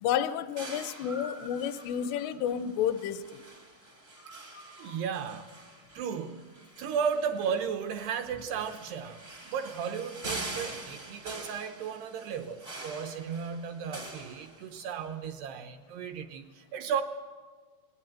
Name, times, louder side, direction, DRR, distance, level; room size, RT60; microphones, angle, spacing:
voice 1, 0.0-3.4, left 9 dB, 80° left, 13 dB, 3.4 m, -31 dB
sound 1, 0.6-15.0, right 2 dB, 55° right, 0.6 m, -45 dB
voice 2, 4.8-5.5 6.0-6.5 6.8-9.2 9.5-17.0, right 7 dB, 80° right, 8 dB, 2.4 m, -34 dB
19.5 x 19.0 x 9.0 m, 1.5 s
omnidirectional pair, 5.7 m